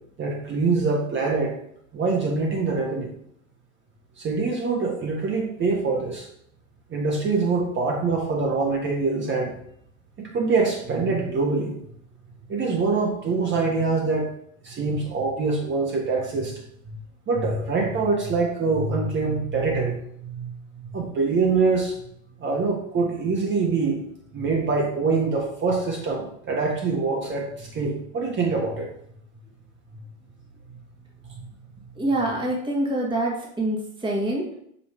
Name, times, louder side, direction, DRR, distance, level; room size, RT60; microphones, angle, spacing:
voice 1, 0.2-1.5 1.9-3.1 4.2-6.3 6.9-9.5 10.2-11.8 12.5-14.3 14.6-16.6 17.3-20.5 20.9-22.0 22.4-24.0 24.3-28.9, right 4 dB, 30° right, -1 dB, 1.4 m, -24 dB
voice 2, 32.0-34.5, right 1 dB, 10° right, -2 dB, 1.4 m, -25 dB
5.6 x 3.1 x 5.5 m, 0.70 s
hypercardioid pair, 100°, 40 cm